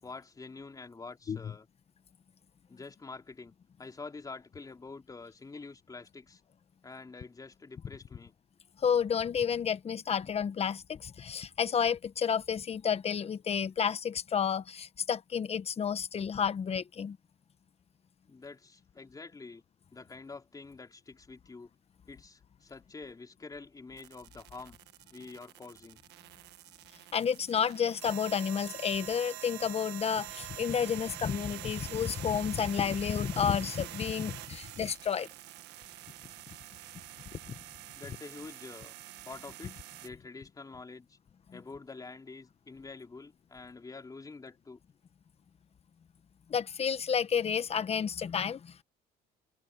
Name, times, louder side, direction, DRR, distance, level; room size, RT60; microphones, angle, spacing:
voice 1, 0.0-1.7 2.7-3.5 3.8-6.4 6.8-8.3 18.3-19.6 19.9-21.7 22.1-24.8 25.1-26.0 34.6-34.7 37.9-38.9 39.2-41.2 41.5-44.8, left 4 dB, 20° left, 3.8 m, -47 dB
voice 2, 8.8-17.2 27.1-35.3 37.5-37.6 46.5-48.8, left 7 dB, 35° left, 1.1 m, -31 dB
sound 1, 24.0-40.1, right 16 dB, 85° right, 1.4 m, -46 dB
cardioid pair, 110°, 17 cm